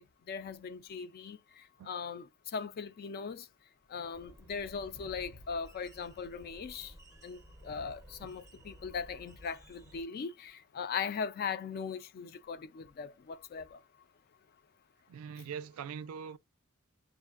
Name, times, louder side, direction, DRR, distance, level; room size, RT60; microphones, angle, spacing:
voice 1, 0.3-1.4 1.9-2.3 2.5-3.4 3.9-6.9 7.2-13.8, left 6 dB, 45° left, 0.3 m, -39 dB
sound 1, 4.1-10.0, right 1 dB, 15° right, 0.6 m, -55 dB
voice 2, 15.1-16.4, right 7 dB, 80° right, 0.3 m, -42 dB
7.2 x 2.6 x 2.4 m
head